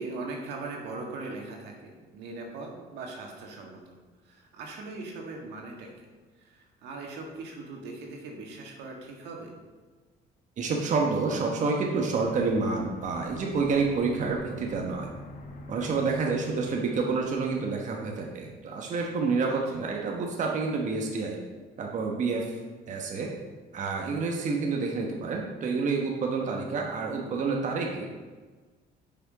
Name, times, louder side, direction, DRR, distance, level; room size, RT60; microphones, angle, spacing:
voice 1, 0.0-3.9 4.2-5.9 6.4-9.5 19.5-19.6, right 3 dB, 85° right, 0 dB, 1.6 m, -40 dB
voice 2, 10.6-15.1 15.7-21.4 21.8-22.5 22.9-23.3 23.7-28.1, right 4 dB, 45° right, 0 dB, 1.1 m, -28 dB
Aircraft, 12.2-18.3, left 1 dB, 55° left, 1.0 m, -46 dB
7.0 x 5.9 x 4.9 m, 1.4 s
cardioid pair, 110°, 17 cm